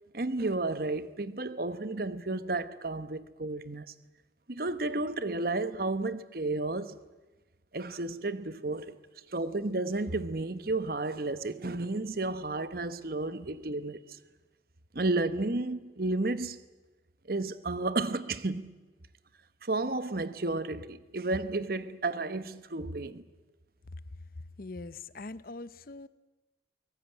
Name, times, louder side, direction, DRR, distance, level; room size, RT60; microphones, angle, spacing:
voice 1, 0.1-3.9 4.5-7.0 7.7-9.0 9.3-14.2 14.9-16.6 17.3-18.7 19.6-23.2, right 2 dB, 50° right, 1.0 m, -32 dB
voice 2, 24.6-26.1, left 3 dB, 50° left, 0.7 m, -42 dB
23.0 x 18.5 x 9.1 m
head